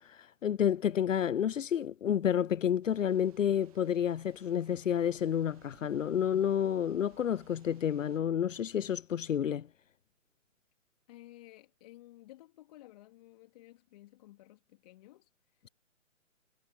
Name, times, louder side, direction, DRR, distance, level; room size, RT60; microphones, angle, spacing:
voice 1, 0.4-9.7, left 9 dB, 75° left, 0.5 m, -30 dB
Thunder / Rain, 2.8-8.2, right 15 dB, 30° right, 1.7 m, -63 dB
voice 2, 11.1-15.6, left 16 dB, 30° left, 3.3 m, -55 dB
figure-of-eight pair, 140°, 39 cm